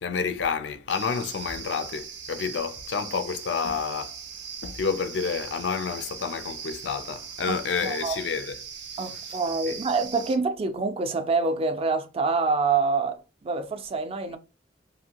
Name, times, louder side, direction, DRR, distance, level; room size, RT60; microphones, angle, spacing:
voice 1, 0.0-4.2 4.6-8.6 8.9-9.4 9.7-9.8, left 5 dB, 85° left, 0.4 m, -29 dB
sound 1, 0.9-10.4, right 7 dB, 85° right, 0.5 m, -39 dB
voice 2, 7.5-8.2 9.0-14.4, right 4 dB, 35° right, 0.4 m, -26 dB
2.7 x 2.5 x 2.8 m
head